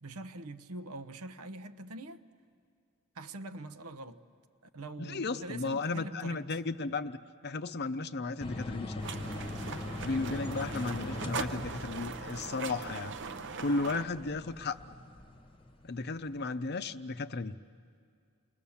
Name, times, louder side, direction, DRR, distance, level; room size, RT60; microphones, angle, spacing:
voice 1, 0.0-2.2 3.1-4.2 4.7-6.4 10.2-10.6, right 2 dB, 80° right, 0.9 m, -44 dB
voice 2, 5.0-7.2 7.4-9.1 10.0-13.1 13.6-14.8 15.8-17.6, left 3 dB, 45° left, 0.6 m, -34 dB
sound 1, 8.4-16.4, left 1 dB, 25° left, 1.1 m, -42 dB
sound 2, 9.0-14.0, right 5 dB, 55° right, 0.8 m, -40 dB
29.0 x 21.5 x 7.1 m
head